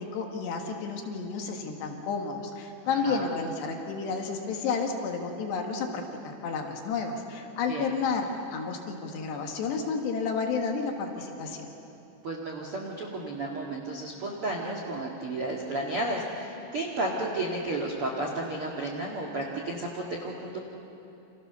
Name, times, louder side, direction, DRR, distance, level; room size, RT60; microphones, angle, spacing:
voice 1, 0.0-11.7, left 5 dB, 65° left, 3 dB, 3.6 m, -31 dB
voice 2, 12.2-20.6, right 2 dB, 50° right, -1 dB, 1.6 m, -32 dB
29.5 x 27.5 x 6.9 m, 3.0 s
omnidirectional pair, 5.8 m